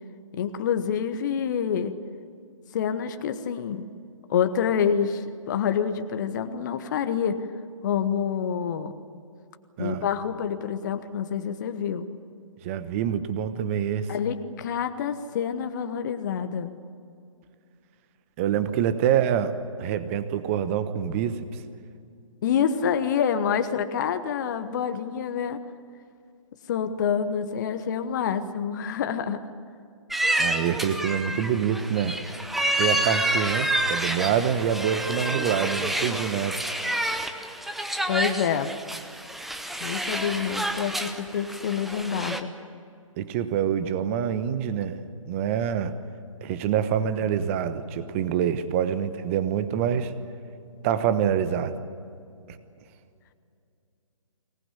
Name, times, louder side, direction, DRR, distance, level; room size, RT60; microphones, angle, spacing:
voice 1, 0.3-1.9 2.7-3.9 4.3-7.4 7.8-8.9 9.8-12.1 14.1-16.7 22.4-25.6 26.7-29.4 38.1-38.7 39.8-42.5, left 7 dB, 35° left, 9 dB, 1.1 m, -27 dB
voice 2, 12.6-14.1 18.4-19.5 19.8-21.5 30.4-32.2 32.8-36.6 43.2-45.0 45.3-45.9 46.4-50.1 50.8-51.7 52.5-52.6, right 9 dB, 25° right, 12 dB, 1.2 m, -26 dB
sound 1, 30.1-42.4, right 1 dB, ahead, 0.6 m, -29 dB
24.5 x 19.0 x 8.5 m, 2.4 s
figure-of-eight pair, 135°, 18 cm